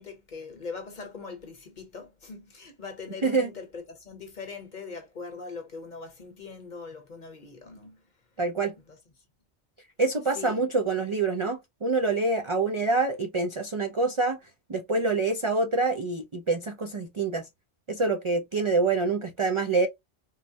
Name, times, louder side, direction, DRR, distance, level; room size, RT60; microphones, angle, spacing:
voice 1, 0.0-8.0 8.9-9.0 10.3-10.6, left 4 dB, 45° left, 0.9 m, -41 dB
voice 2, 8.4-8.7 10.0-14.4 14.7-17.5 17.9-19.9, right 3 dB, 50° right, 0.3 m, -26 dB
3.7 x 2.1 x 2.7 m
omnidirectional pair, 1.2 m